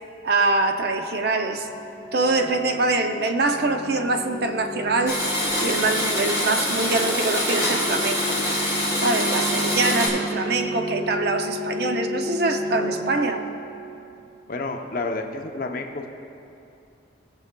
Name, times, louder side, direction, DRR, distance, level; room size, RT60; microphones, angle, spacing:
voice 1, 0.2-1.7 2.1-5.2 5.6-8.4 9.0-13.4, right 3 dB, 55° right, 6 dB, 0.5 m, -24 dB
sound 1, 1.5-14.2, equal, 5° left, 1.2 m, -33 dB
Domestic sounds home sounds, 5.1-10.1, left 1 dB, 15° right, 1.8 m, -24 dB
voice 2, 14.5-16.1, left 3 dB, 45° left, 3 dB, 0.6 m, -30 dB
18.0 x 6.9 x 2.2 m, 2.7 s
head